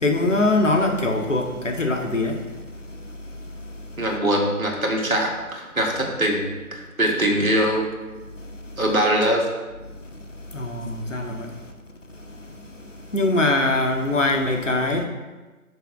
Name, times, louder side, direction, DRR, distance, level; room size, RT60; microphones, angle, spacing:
voice 1, 0.0-2.4 10.5-11.5 13.1-15.1, left 2 dB, 55° left, 3 dB, 1.1 m, -22 dB
voice 2, 4.0-7.9 8.8-9.4, equal, 70° right, -1 dB, 2.0 m, -22 dB
13.0 x 6.7 x 2.4 m, 1.2 s
figure-of-eight pair, 170°, 44 cm